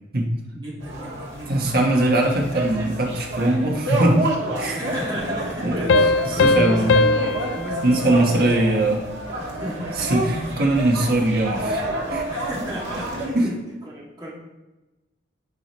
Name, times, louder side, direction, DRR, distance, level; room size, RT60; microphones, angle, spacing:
voice 1, 0.5-2.1 4.7-7.3 7.5-8.6 9.4-10.4 12.3-13.5 13.8-14.3, equal, 20° right, -5 dB, 2.1 m, -33 dB
sound 1, 0.8-13.3, right 1 dB, 70° right, 1.7 m, -29 dB
voice 2, 1.5-4.3 4.6-4.8 5.6-5.8 6.2-7.0 7.8-9.1 10.0-11.8 12.1-12.3 13.3-13.5, right 1 dB, 50° right, 0 dB, 1.3 m, -21 dB
sound 2, 5.9-9.2, left 3 dB, 70° left, 0.3 m, -21 dB
11.0 x 4.9 x 3.1 m, 1.1 s
head